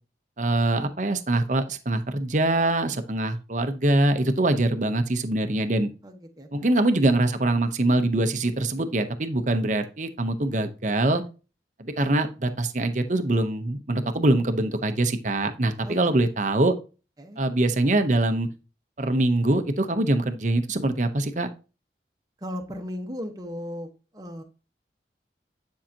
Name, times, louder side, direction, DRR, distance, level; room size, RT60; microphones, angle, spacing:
voice 1, 0.4-5.9 6.5-11.2 11.8-16.7 17.4-18.5 19.0-21.5, right 2 dB, 45° right, 8 dB, 0.9 m, -23 dB
voice 2, 6.0-6.5 15.8-16.1 17.2-17.4 22.4-24.4, equal, 20° right, 4 dB, 1.2 m, -36 dB
10.0 x 5.7 x 2.9 m, 0.32 s
head